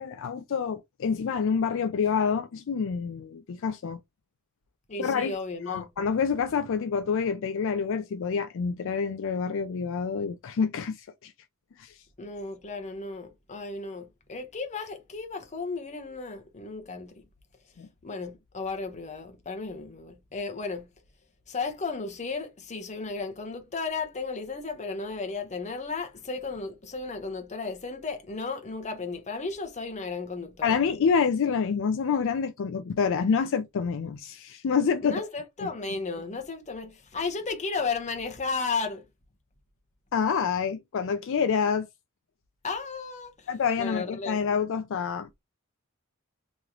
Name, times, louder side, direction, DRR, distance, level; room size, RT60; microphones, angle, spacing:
voice 1, 0.0-4.0 5.0-5.3 5.7-11.3 11.8-12.0 17.8-17.9 30.6-35.2 35.6-35.7 40.1-41.9 43.5-45.4, left 6 dB, 60° left, 0.4 m, -27 dB
voice 2, 4.9-5.9 12.2-17.1 18.0-20.9 21.5-30.8 35.0-39.0 42.6-43.5 43.8-44.4, left 4 dB, 30° left, 0.9 m, -34 dB
3.1 x 2.9 x 3.6 m
head